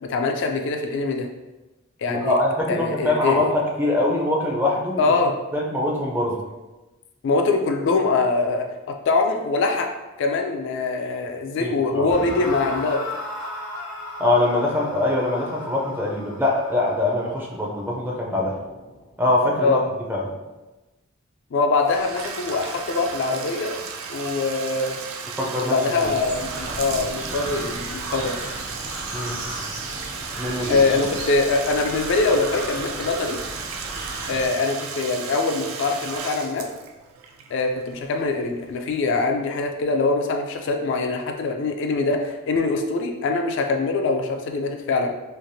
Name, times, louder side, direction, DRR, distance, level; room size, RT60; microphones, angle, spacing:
voice 1, 0.0-1.3 2.0-2.3 2.7-3.5 5.0-5.4 7.2-9.9 10.2-13.0 19.6-19.8 21.5-23.8 24.1-25.0 25.7-28.3 30.7-33.4 34.3-36.7 37.5-45.2, left 3 dB, 60° left, 3 dB, 0.3 m, -23 dB
voice 2, 2.1-5.1 5.5-6.4 11.6-12.1 14.2-18.6 19.2-19.8 20.1-20.3 25.4-26.1 29.1-29.4 30.4-31.1, left 2 dB, 10° right, -2 dB, 0.4 m, -23 dB
sound 1, 12.1-19.2, left 2 dB, 90° left, 0.8 m, -36 dB
Bathtub (filling or washing), 21.8-38.5, right 5 dB, 80° right, 0.3 m, -35 dB
sound 2, 26.0-34.5, right 1 dB, 60° right, 0.7 m, -35 dB
3.2 x 2.4 x 2.6 m, 1.1 s
head